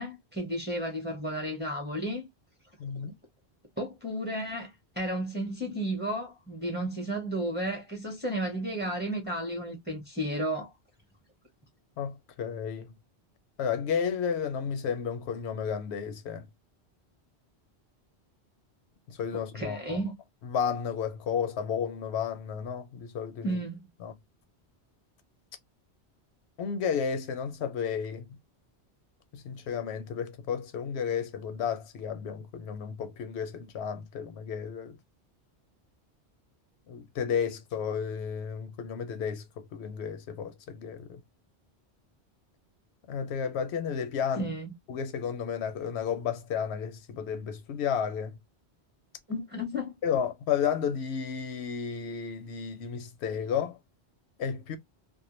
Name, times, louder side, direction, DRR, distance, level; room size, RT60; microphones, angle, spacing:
voice 1, 0.0-2.3 3.8-4.7 5.0-10.7 19.3-20.2 23.4-23.8 44.4-44.7 49.3-50.0, right 1 dB, 10° right, 0.8 m, -33 dB
voice 2, 2.8-3.1 12.0-12.9 13.6-16.5 19.1-20.1 20.4-23.6 24.0-24.1 26.6-28.4 29.3-35.0 36.9-41.2 43.1-44.5 44.9-48.4 50.0-53.8 54.4-54.8, left 7 dB, 80° left, 0.8 m, -32 dB
2.2 x 2.1 x 3.0 m
omnidirectional pair, 1.1 m